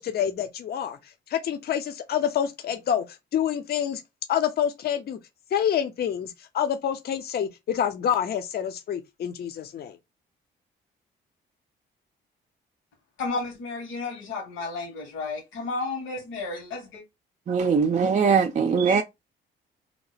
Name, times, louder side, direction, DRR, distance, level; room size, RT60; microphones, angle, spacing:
voice 1, 0.0-3.0 3.3-4.0 4.3-5.2 5.5-10.0, left 9 dB, 50° left, 0.6 m, -27 dB
voice 2, 13.2-17.0, left 3 dB, 85° left, 1.5 m, -32 dB
voice 3, 17.5-19.0, right 5 dB, 35° right, 0.5 m, -21 dB
2.8 x 2.1 x 4.0 m
cardioid pair, 90°, 20 cm